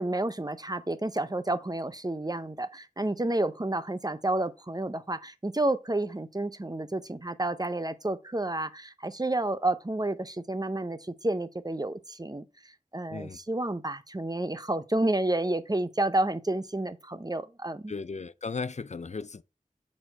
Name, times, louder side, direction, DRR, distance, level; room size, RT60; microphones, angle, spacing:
voice 1, 0.0-12.4 12.9-17.9, right 2 dB, 30° right, 0.6 m, -30 dB
voice 2, 17.9-19.4, left 4 dB, 55° left, 0.4 m, -36 dB
6.8 x 4.3 x 4.4 m
wide cardioid pair, 40°, 14 cm